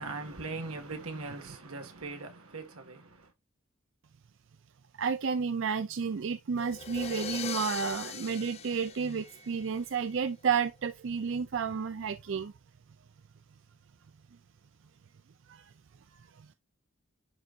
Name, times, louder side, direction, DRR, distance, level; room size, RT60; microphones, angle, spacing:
voice 1, 0.0-3.3, right 3 dB, 90° right, 1.7 m, -40 dB
voice 2, 5.0-12.5 15.5-15.6, right 6 dB, 60° right, 0.4 m, -31 dB
sound 1, 6.6-9.8, left 7 dB, 30° left, 0.4 m, -40 dB
11.0 x 3.9 x 2.5 m
head